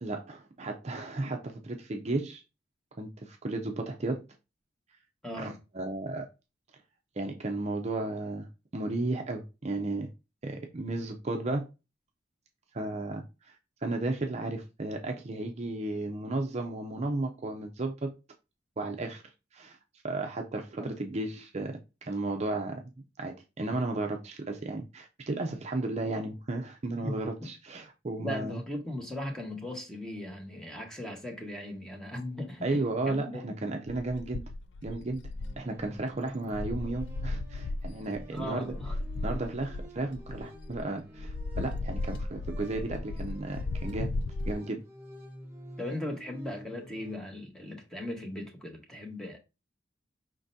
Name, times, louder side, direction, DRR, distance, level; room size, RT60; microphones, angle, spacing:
voice 1, 0.0-2.4 3.0-4.2 5.4-6.2 7.2-10.1 10.4-11.7 12.7-13.3 13.8-18.1 18.8-19.2 19.5-19.8 20.0-22.8 23.2-28.6 32.6-34.4 34.8-35.2 35.6-38.7 39.2-44.1 44.4-44.8, right 2 dB, 35° right, 0.6 m, -34 dB
voice 2, 5.2-5.6 20.8-20.9 27.0-27.5 28.2-33.4 38.3-38.9 45.8-49.4, left 1 dB, 5° left, 1.1 m, -38 dB
sound 1, 33.9-36.2 36.5-40.8 41.2-44.5, left 2 dB, 65° left, 0.4 m, -36 dB
sound 2, 35.3-47.2, equal, 10° right, 1.6 m, -49 dB
5.2 x 3.8 x 2.6 m
head